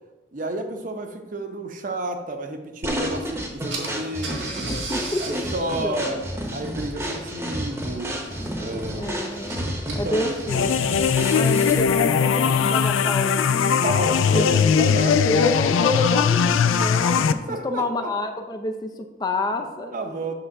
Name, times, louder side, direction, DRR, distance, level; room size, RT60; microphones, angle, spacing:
voice 1, 0.3-4.8 5.2-6.2 6.5-8.2 8.6-9.4 9.9-10.3 13.8-15.2 17.0-17.1 17.5-18.1 19.9-20.3, right 1 dB, 40° right, 5 dB, 0.7 m, -31 dB
sound 1, 2.8-12.0, equal, 15° right, 0.8 m, -31 dB
Car / Engine, 3.2-3.3 3.7-11.1, right 2 dB, 75° right, 1.5 m, -38 dB
voice 2, 4.7-6.2 8.4-9.6 9.9-10.7 11.3-13.7 14.3-14.5 14.8-15.0 15.2-20.2, left 2 dB, 20° left, 5 dB, 0.4 m, -28 dB
sound 2, 10.5-17.3, left 6 dB, 90° left, 0.4 m, -20 dB
7.8 x 3.3 x 6.0 m, 1.2 s
head